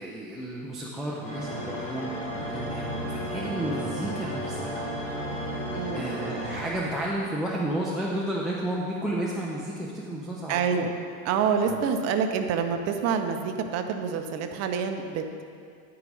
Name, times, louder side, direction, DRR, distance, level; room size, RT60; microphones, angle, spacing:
voice 1, 0.0-4.8 5.9-10.9 11.7-11.8, right 1 dB, ahead, -5 dB, 0.3 m, -32 dB
sound 1, 1.2-7.2, equal, 15° left, 1.9 m, -33 dB
voice 2, 5.7-6.1 10.5-10.9 11.2-15.4, right 6 dB, 40° right, 6 dB, 0.7 m, -27 dB
9.7 x 4.7 x 5.3 m, 2.3 s
supercardioid pair, 130°, 42 cm